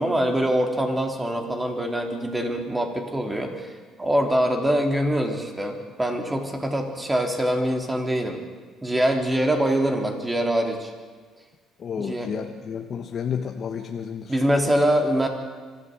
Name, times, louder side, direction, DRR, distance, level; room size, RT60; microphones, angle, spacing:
voice 1, 0.0-8.4 8.8-10.9 12.0-12.3 14.3-15.3, right 1 dB, 15° right, 4 dB, 3.6 m, -24 dB
voice 2, 11.8-14.4, left 7 dB, 50° left, 4 dB, 1.4 m, -31 dB
25.5 x 14.0 x 8.1 m, 1.5 s
cardioid pair, 100°, 0 cm